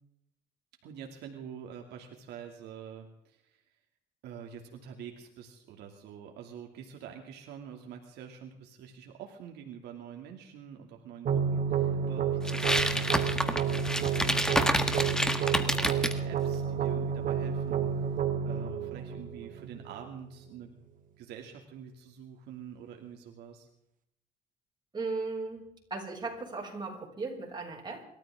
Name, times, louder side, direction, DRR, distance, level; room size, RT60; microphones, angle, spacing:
voice 1, 0.8-3.6 4.2-20.7 21.2-23.7, right 8 dB, 80° right, 2 dB, 2.6 m, -46 dB
sound 1, 11.2-20.2, right 7 dB, 50° right, 2.2 m, -30 dB
sound 2, 12.5-16.2, equal, 5° left, 1.6 m, -28 dB
voice 2, 24.9-28.0, right 3 dB, 25° right, -1 dB, 6.5 m, -37 dB
28.0 x 13.5 x 3.7 m, 0.77 s
cardioid pair, 110°, 17 cm